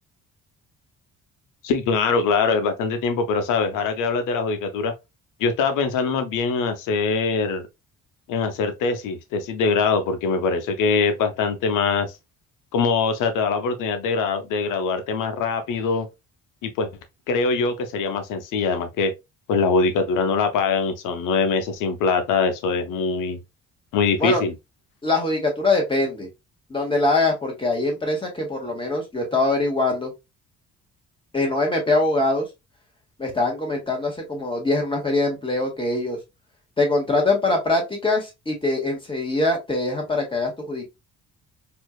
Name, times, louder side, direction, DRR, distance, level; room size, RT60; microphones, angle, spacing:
voice 1, 1.6-4.9 5.4-7.7 8.3-12.2 12.7-16.1 16.6-16.9 17.3-19.1 19.5-23.4 23.9-24.5, left 4 dB, 90° left, 0.9 m, -23 dB
voice 2, 25.0-26.3 26.7-30.1 31.3-32.5 33.2-36.2 36.8-40.8, left 2 dB, 15° left, 1.8 m, -23 dB
4.3 x 2.8 x 2.3 m
cardioid pair, 100°, 31 cm